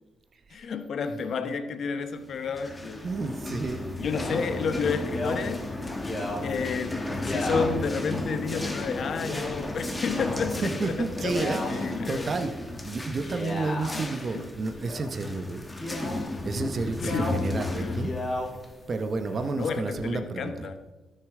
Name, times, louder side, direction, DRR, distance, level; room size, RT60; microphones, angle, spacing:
voice 1, 0.5-3.1 4.0-5.8 6.4-12.3 13.9-14.1 14.3-14.5 17.0-18.0 19.5-20.9, left 5 dB, 60° left, 0.8 m, -31 dB
sound 1, 2.4-19.8, left 2 dB, 15° left, 1.1 m, -34 dB
voice 2, 3.0-3.8 10.6-12.5 12.8-15.6 16.4-18.1 18.9-20.7, right 3 dB, 40° right, 0.8 m, -31 dB
Male speech man speaking, 4.0-4.4 5.0-5.4 5.9-6.4 7.1-7.7 8.4-8.7 9.2-9.5 10.0-10.6 11.1-11.7 13.1-14.0 14.7-15.1 15.7-16.2 16.9-17.4 17.8-18.5 19.2-19.7, left 1 dB, 30° left, 3.0 m, -35 dB
12.5 x 6.7 x 3.7 m
cardioid pair, 90°, 0 cm